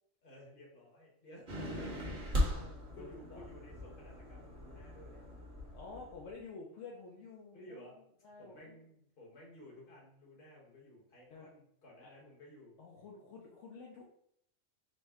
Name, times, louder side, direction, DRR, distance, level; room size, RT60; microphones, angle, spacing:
voice 1, 0.2-5.2 7.5-7.9 8.4-12.8, equal, 45° left, -3 dB, 1.4 m, -55 dB
sound 1, 1.5-6.3, left 1 dB, 45° right, 1.1 m, -38 dB
voice 2, 1.6-2.0 2.5-3.4 5.7-7.9 8.2-8.8 11.3-11.5 11.9-12.1 12.8-14.0, left 4 dB, 70° left, -2 dB, 1.0 m, -51 dB
5.2 x 2.1 x 3.5 m, 0.72 s
omnidirectional pair, 1.3 m